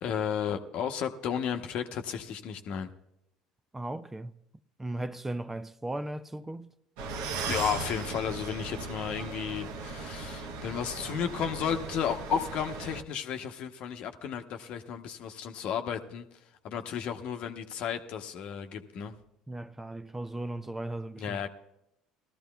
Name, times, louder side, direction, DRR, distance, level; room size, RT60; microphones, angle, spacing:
voice 1, 0.0-2.9 7.5-16.3 16.6-19.1 21.2-21.5, left 8 dB, 55° left, 0.9 m, -33 dB
voice 2, 3.7-4.3 4.8-6.7 19.5-21.5, right 1 dB, 15° right, 0.5 m, -37 dB
sound 1, 7.0-13.0, right 4 dB, 65° right, 0.9 m, -38 dB
19.0 x 13.5 x 2.3 m
hypercardioid pair, 65°, 2 cm